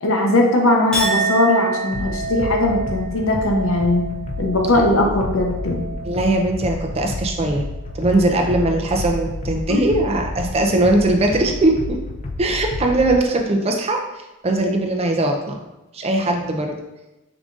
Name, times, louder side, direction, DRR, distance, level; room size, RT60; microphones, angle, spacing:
voice 1, 0.0-4.1 4.4-5.8 9.7-9.8, left 2 dB, 75° left, 1 dB, 0.8 m, -19 dB
Chink clink, 0.9-7.5 7.9-8.4, right 3 dB, 5° left, 0.8 m, -29 dB
sound 1, 1.9-13.2, left 2 dB, 35° left, 0.3 m, -30 dB
voice 2, 6.0-7.6 7.9-12.0 12.4-15.6 15.9-16.8, right 2 dB, 30° right, 2 dB, 0.5 m, -20 dB
4.7 x 3.8 x 2.5 m, 0.98 s
head